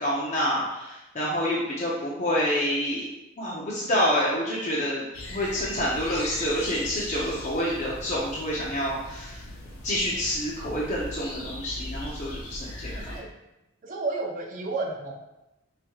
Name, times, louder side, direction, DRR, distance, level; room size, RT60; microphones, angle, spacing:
voice 1, 0.0-3.0 3.4-5.0 5.3-9.5 9.8-13.1, equal, 35° left, -6 dB, 0.6 m, -28 dB
sound 1, 5.1-13.2, left 1 dB, 80° left, 0.8 m, -39 dB
voice 2, 12.9-13.3 13.8-15.2, right 3 dB, 40° right, -1 dB, 0.6 m, -32 dB
4.9 x 3.0 x 2.3 m, 0.93 s
head